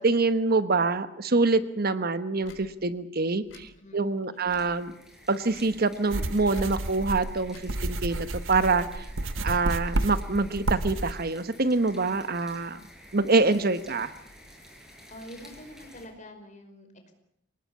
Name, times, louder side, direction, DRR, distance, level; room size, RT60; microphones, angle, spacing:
voice 1, 0.0-4.9 5.3-9.0 9.4-12.8 13.1-14.1, right 3 dB, 50° right, 12 dB, 1.2 m, -25 dB
Tick / Tick-tock, 2.4-2.6 3.4-3.7 4.4-4.7 5.5-5.8 6.5-6.7 7.4-7.7 8.4-8.7 9.4-9.7, left 3 dB, 80° left, 4.3 m, -51 dB
voice 2, 3.8-4.5 12.5-12.6 15.1-17.1, equal, 40° left, 6 dB, 5.2 m, -46 dB
sound 1, 4.4-16.1, equal, 5° right, 6.4 m, -51 dB
sound 2, 6.1-11.1, right 2 dB, 80° right, 1.2 m, -31 dB
25.5 x 19.0 x 8.7 m, 0.76 s
head